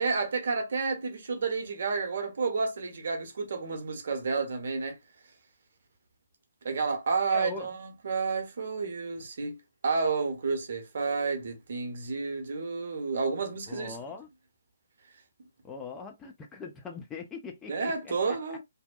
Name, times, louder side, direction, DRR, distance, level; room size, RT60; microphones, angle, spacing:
voice 1, 0.0-5.0 6.6-14.0 17.7-18.6, right 4 dB, 50° right, 0.8 m, -30 dB
voice 2, 7.3-7.7 13.7-14.3 15.6-18.6, left 5 dB, 10° left, 0.4 m, -41 dB
2.7 x 2.1 x 2.2 m
figure-of-eight pair, 135°, 0 cm